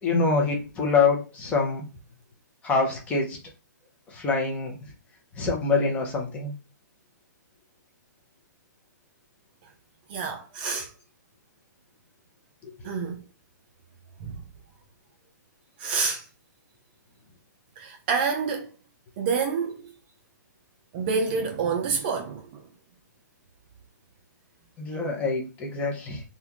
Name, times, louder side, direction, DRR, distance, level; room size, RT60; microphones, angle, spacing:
voice 1, 0.0-1.9 2.6-3.4 4.1-4.7 5.4-6.5 12.6-12.7 24.8-26.2, left 4 dB, 15° left, 0.8 m, -25 dB
voice 2, 10.1-10.9 12.8-13.2 14.2-14.3 15.8-16.2 17.8-18.7 19.2-19.9 20.9-22.5, right 5 dB, 30° right, 0.5 m, -28 dB
3.6 x 2.4 x 2.9 m
hypercardioid pair, 160°, 10 cm